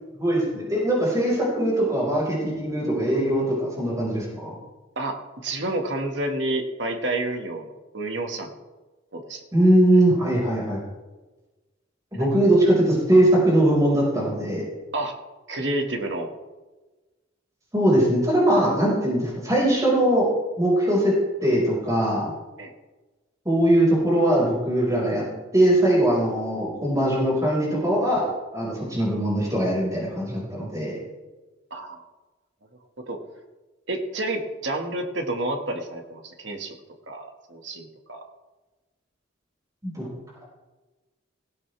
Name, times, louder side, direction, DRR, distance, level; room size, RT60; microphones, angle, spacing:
voice 1, 0.2-4.5 9.5-10.8 12.1-14.6 17.7-20.3 20.6-21.1 21.4-22.3 23.5-25.2 25.5-28.2 28.5-30.9 39.8-40.1, right 1 dB, 20° right, -5 dB, 5.3 m, -21 dB
voice 2, 5.0-8.5 9.1-9.4 12.1-12.3 14.9-15.2 15.5-16.3 22.6-22.7 31.7-32.0 33.1-33.2 33.9-36.7 37.1-38.2, right 2 dB, 65° right, 3 dB, 2.0 m, -29 dB
18.0 x 16.5 x 3.5 m, 1.2 s
head